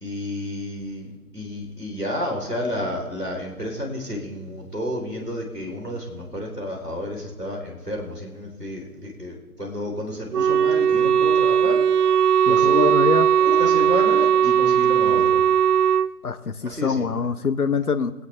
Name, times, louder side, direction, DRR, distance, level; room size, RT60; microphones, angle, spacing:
voice 1, 0.0-13.0 13.4-15.4 16.6-17.1, left 1 dB, 5° left, -12 dB, 2.5 m, -31 dB
Wind instrument woodwind instrument, 10.3-16.1, right 8 dB, 80° right, 0.5 m, -18 dB
voice 2, 12.5-13.3 16.2-18.1, left 5 dB, 70° left, 9 dB, 1.0 m, -24 dB
22.5 x 8.4 x 3.3 m, 1.3 s
figure-of-eight pair, 160°, 46 cm